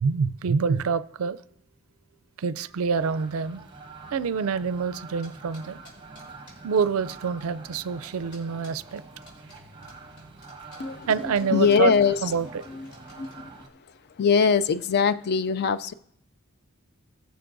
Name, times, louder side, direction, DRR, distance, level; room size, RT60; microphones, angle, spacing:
voice 1, 0.0-1.4 2.4-3.6 4.1-5.8 6.6-9.0 11.1-11.9 12.2-12.5, right 5 dB, 70° right, 16 dB, 0.4 m, -26 dB
sound 1, 2.9-13.7, right 3 dB, 20° right, 0.9 m, -46 dB
sound 2, 5.2-7.1 7.4-7.5 7.7-13.4, left 1 dB, 85° left, 4.0 m, -51 dB
voice 2, 10.8-12.2 12.7-13.6 14.2-15.9, left 6 dB, 50° left, 13 dB, 0.4 m, -23 dB
20.0 x 6.7 x 2.6 m, 0.73 s
head